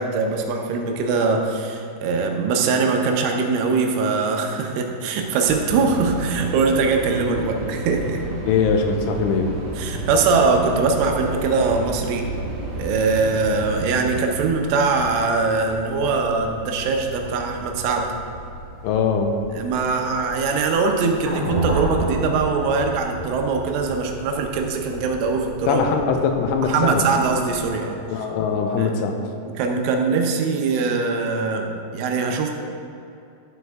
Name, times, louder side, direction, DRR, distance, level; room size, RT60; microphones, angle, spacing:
voice 1, 0.0-8.2 9.8-12.3 12.7-18.1 19.5-25.8 26.7-28.0 28.8-28.9 29.5-32.5, right 4 dB, 80° right, 2 dB, 3.3 m, -22 dB
sound 1, 5.5-14.2, right 2 dB, 65° right, 3.0 m, -31 dB
voice 2, 8.5-9.5 18.8-19.4 25.7-27.0 28.1-29.2, left 5 dB, 85° left, 4 dB, 3.2 m, -21 dB
sound 2, 9.4-27.7, left 1 dB, 40° left, 1.6 m, -40 dB
sound 3, 21.2-25.5, right 1 dB, 40° right, 3.1 m, -29 dB
12.5 x 7.7 x 3.5 m, 2.6 s
omnidirectional pair, 5.6 m